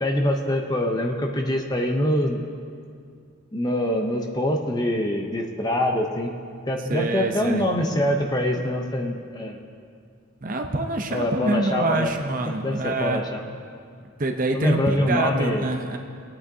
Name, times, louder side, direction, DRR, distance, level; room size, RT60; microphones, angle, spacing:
voice 1, 0.0-2.4 3.5-6.3 6.7-9.6 11.1-12.1 12.6-13.4 14.5-15.7, left 1 dB, 20° left, 2 dB, 0.7 m, -24 dB
voice 2, 6.9-7.7 10.4-13.2 14.2-16.0, right 2 dB, 40° right, 4 dB, 0.6 m, -25 dB
19.5 x 8.8 x 2.7 m, 2.3 s
head